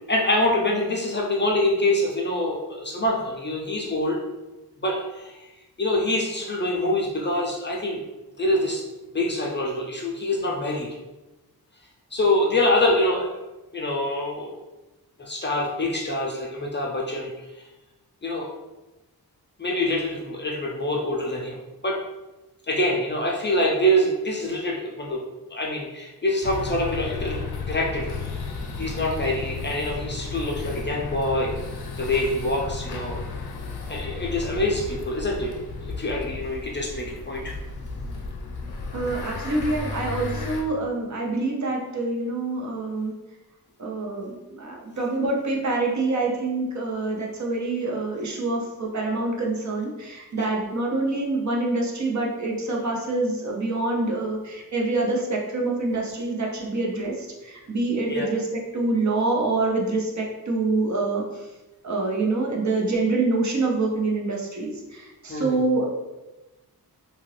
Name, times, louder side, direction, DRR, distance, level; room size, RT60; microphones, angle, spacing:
voice 1, 0.1-4.2 4.8-5.5 5.8-8.0 8.4-8.8 9.1-10.9 12.1-13.3 13.7-14.5 15.2-17.5 18.2-18.5 19.6-22.0 22.7-25.2 25.5-27.4 27.7-28.1 28.8-31.6 32.0-33.2 33.9-35.5 35.8-37.5 58.1-58.3 65.3-65.6, left 1 dB, 30° left, -2 dB, 0.4 m, -25 dB
sound 1, 26.4-40.6, left 3 dB, 80° left, 0.6 m, -33 dB
voice 2, 38.9-43.1 43.8-58.5 58.7-61.2 61.8-65.9, right 2 dB, 50° right, -1 dB, 0.7 m, -26 dB
2.8 x 2.4 x 3.1 m, 1.1 s
wide cardioid pair, 115°, 38 cm